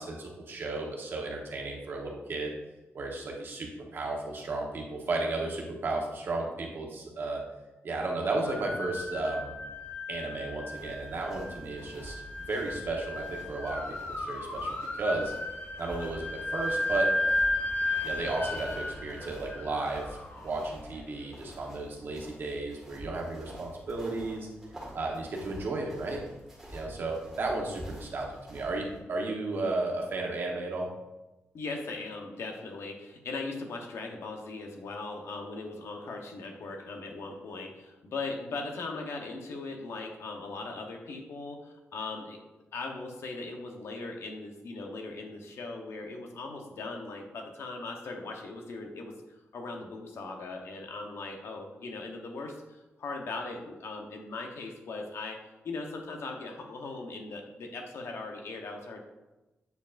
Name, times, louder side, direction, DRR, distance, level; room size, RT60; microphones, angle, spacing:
voice 1, 0.0-2.5 2.9-7.4 7.8-9.5 10.1-12.2 12.5-15.3 15.8-17.1 18.0-20.2 20.4-24.5 24.9-26.2 26.7-30.9, right 2 dB, 50° right, 0 dB, 1.1 m, -34 dB
sound 1, 8.4-21.5, left 1 dB, 35° left, 0.7 m, -34 dB
sound 2, 10.7-29.0, equal, 10° right, 1.7 m, -48 dB
voice 2, 31.5-42.4 42.7-49.1 49.5-55.4 55.6-59.0, left 3 dB, 70° left, 2 dB, 0.9 m, -39 dB
8.0 x 4.8 x 2.5 m, 1.0 s
wide cardioid pair, 175°, 5 cm